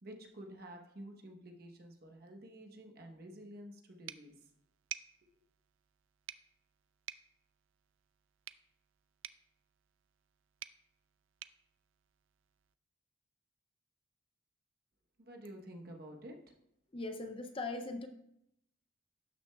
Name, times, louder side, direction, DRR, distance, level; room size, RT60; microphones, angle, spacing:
voice 1, 0.0-4.3 5.2-5.3 15.2-16.3, right 1 dB, 50° right, 2 dB, 0.9 m, -50 dB
sound 1, 4.1-12.8, right 12 dB, 75° right, 0.3 m, -52 dB
voice 2, 16.9-18.1, left 3 dB, 25° left, 7 dB, 0.5 m, -40 dB
12.0 x 6.1 x 2.3 m, 0.79 s
head